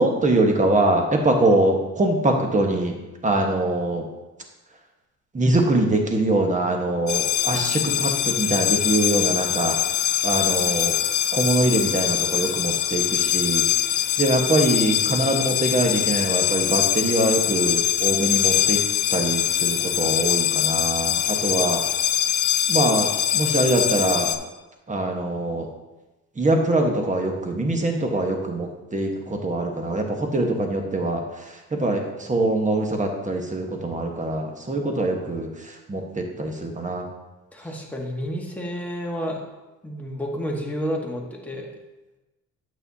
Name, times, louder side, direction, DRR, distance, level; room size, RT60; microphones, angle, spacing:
voice 1, 0.0-2.9 3.2-4.1 5.3-9.8 10.2-10.9 11.3-13.6 14.2-18.8 19.1-21.8 22.7-24.3 24.9-25.7 26.4-37.0, right 2 dB, 25° right, 2 dB, 1.3 m, -23 dB
sound 1, 7.1-24.4, left 11 dB, 70° left, 0.6 m, -23 dB
voice 2, 37.5-39.4 39.8-41.7, equal, 5° left, -1 dB, 1.5 m, -30 dB
8.9 x 6.4 x 2.8 m, 1.1 s
cardioid pair, 90°, 30 cm